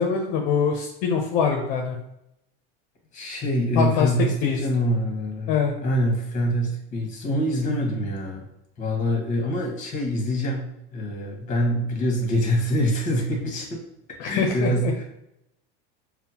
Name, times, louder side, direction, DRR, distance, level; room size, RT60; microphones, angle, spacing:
voice 1, 0.0-2.0 3.8-4.1 4.4-4.6 5.5-5.7 14.2-14.9, left 6 dB, 55° left, 2 dB, 0.6 m, -23 dB
voice 2, 3.1-5.5 5.8-8.4 8.8-10.7 10.9-13.8 14.2-15.0, equal, 25° left, 1 dB, 1.1 m, -25 dB
5.4 x 2.1 x 2.8 m, 0.83 s
supercardioid pair, 150°, 29 cm